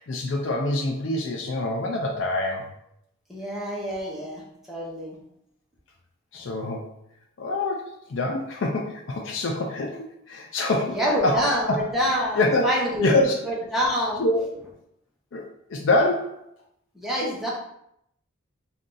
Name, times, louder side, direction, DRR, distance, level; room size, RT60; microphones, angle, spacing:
voice 1, 0.0-2.7 6.3-6.9 7.4-11.8 12.4-12.7 13.0-13.4 14.2-14.4 15.3-15.5 15.7-16.4, left 2 dB, 70° left, 0 dB, 0.5 m, -25 dB
voice 2, 3.3-5.2 10.8-14.2 16.9-17.5, equal, ahead, -5 dB, 1.0 m, -27 dB
3.6 x 2.6 x 3.8 m, 0.75 s
head